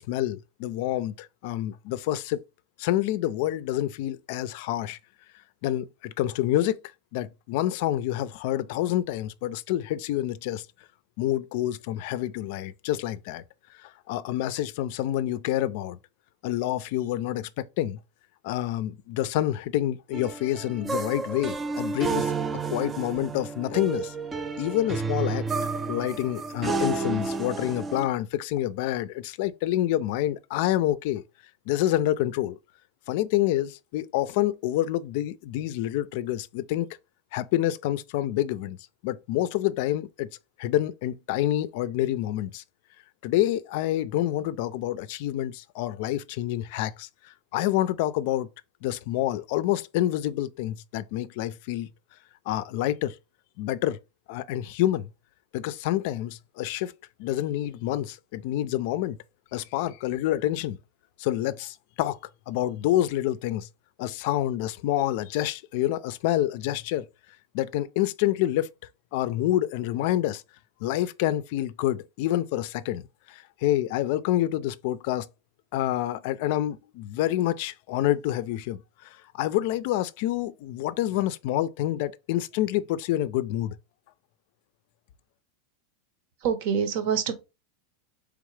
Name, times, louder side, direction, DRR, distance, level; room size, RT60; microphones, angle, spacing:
voice 1, 0.0-2.4 2.8-5.0 5.6-6.8 7.1-10.7 11.2-13.4 13.8-16.0 16.4-18.0 18.4-22.3 22.7-24.1 24.6-25.4 25.9-31.2 31.7-32.6 33.1-36.9 37.3-38.8 39.0-40.3 40.6-42.6 43.2-47.1 47.5-48.5 48.8-51.9 52.5-53.2 53.6-54.0 54.3-55.1 55.5-56.9 57.2-59.2 59.5-60.8 61.2-62.2 62.5-63.7 64.0-67.1 67.5-68.7 69.1-70.4 70.8-73.0 73.3-75.3 75.7-83.8, left 13 dB, 55° left, 0.4 m, -27 dB
sound 1, 20.1-28.1, right 4 dB, 15° right, 0.3 m, -31 dB
voice 2, 86.4-87.3, right 7 dB, 60° right, 0.9 m, -26 dB
3.6 x 3.4 x 3.3 m
supercardioid pair, 150°, 0 cm